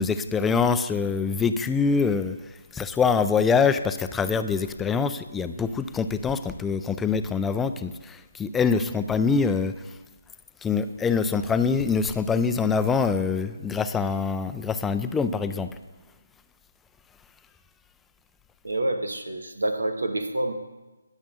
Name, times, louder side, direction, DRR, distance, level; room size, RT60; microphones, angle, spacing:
voice 1, 0.0-9.9 10.6-15.7, left 5 dB, 10° left, 10 dB, 0.4 m, -24 dB
voice 2, 18.6-20.5, right 1 dB, 80° right, 8 dB, 1.1 m, -27 dB
20.5 x 7.2 x 2.5 m, 1.2 s
figure-of-eight pair, 150°, 0 cm